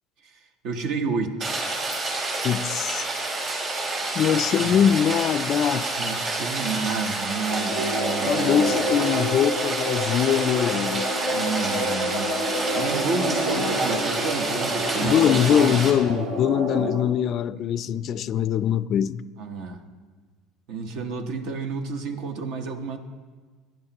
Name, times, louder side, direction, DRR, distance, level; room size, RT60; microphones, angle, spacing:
voice 1, 0.2-1.5 4.6-4.8 6.0-8.8 11.3-12.3 12.7-15.8 16.8-16.9 17.6-17.9 19.4-19.8 20.7-23.0, right 4 dB, 65° right, 1.1 m, -31 dB
Rain, 1.4-15.9, right 2 dB, 40° right, 3.7 m, -29 dB
voice 2, 2.4-3.1 4.1-5.9 8.3-11.1 15.0-19.2, left 9 dB, 50° left, 0.3 m, -22 dB
sound 1, 7.5-17.0, equal, 85° right, 1.9 m, -28 dB
15.0 x 10.5 x 2.9 m
supercardioid pair, 110°, 0 cm